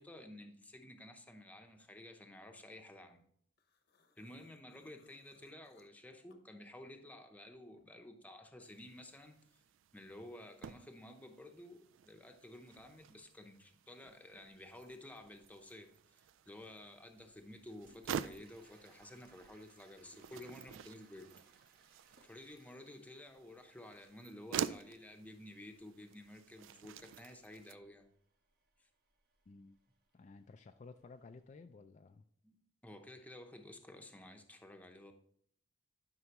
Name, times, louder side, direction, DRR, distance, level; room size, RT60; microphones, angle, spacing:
voice 1, 0.0-3.2 4.2-9.6 9.9-21.3 22.2-28.1 28.8-28.9 32.4-35.1, left 1 dB, 10° left, 5 dB, 0.8 m, -53 dB
sound 1, 3.6-7.1 7.5-9.0, left 3 dB, 55° left, 0.9 m, -71 dB
sound 2, 8.7-27.8, right 8 dB, 75° right, 0.3 m, -48 dB
Toilet flush, 17.2-31.5, right 4 dB, 50° right, 1.2 m, -71 dB
voice 2, 29.5-29.8 30.1-32.2, left 3 dB, 35° left, 6 dB, 0.3 m, -55 dB
11.5 x 5.6 x 3.0 m, 0.66 s
head